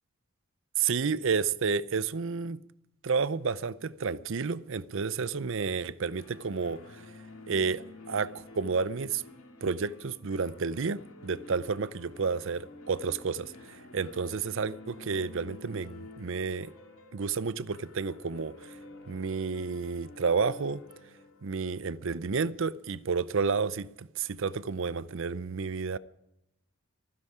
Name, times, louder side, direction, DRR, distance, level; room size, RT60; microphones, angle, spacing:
voice 1, 0.8-2.6 3.0-6.8 7.5-9.2 9.6-16.7 17.1-18.7 19.1-20.8 21.4-26.0, right 5 dB, 60° right, 0.6 m, -31 dB
sound 1, 6.2-22.9, left 2 dB, 75° left, 2.3 m, -50 dB
24.0 x 9.9 x 5.0 m
head